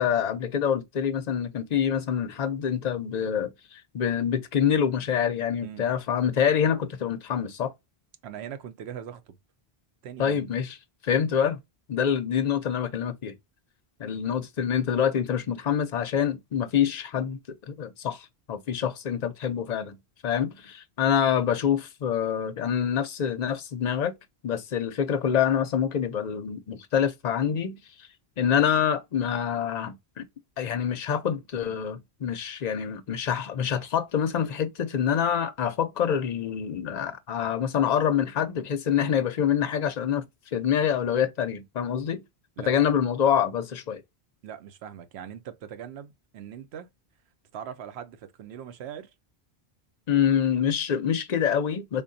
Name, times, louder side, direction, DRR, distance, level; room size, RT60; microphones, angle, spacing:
voice 1, 0.0-7.7 10.2-10.8 11.0-11.6 11.9-13.4 14.0-17.4 17.7-20.0 20.2-24.1 24.4-28.1 28.4-30.2 30.6-42.2 42.7-44.0 50.1-52.0, left 8 dB, 50° left, 0.5 m, -26 dB
voice 2, 8.2-9.4 10.0-10.4 42.6-42.7 44.4-46.9 47.5-49.1, right 9 dB, 80° right, 0.8 m, -40 dB
3.6 x 2.3 x 2.5 m
omnidirectional pair, 1.1 m